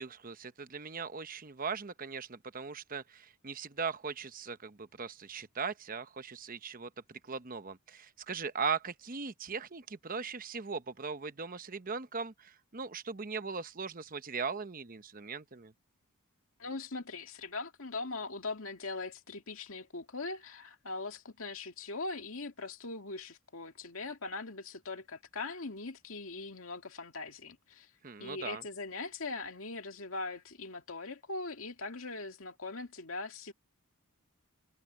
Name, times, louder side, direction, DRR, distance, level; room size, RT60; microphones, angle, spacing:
voice 1, 0.0-15.7 28.0-28.6, right 5 dB, 40° right, 0.9 m, -39 dB
voice 2, 16.6-27.9 28.2-33.5, left 3 dB, 65° left, 2.3 m, -41 dB
head